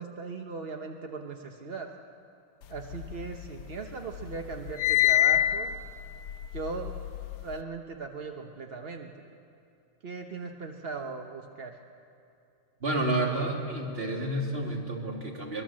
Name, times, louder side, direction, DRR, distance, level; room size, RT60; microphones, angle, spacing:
voice 1, 0.0-1.9 2.7-5.7 6.5-6.9 7.4-9.3 10.0-11.8, right 4 dB, 45° right, 3 dB, 0.8 m, -38 dB
sound 1, 2.8-3.8 4.1-7.5, left 13 dB, 80° left, 1.6 m, -27 dB
voice 2, 12.8-15.6, right 1 dB, 25° right, 1 dB, 2.8 m, -30 dB
24.0 x 21.0 x 7.5 m, 2.7 s
omnidirectional pair, 2.4 m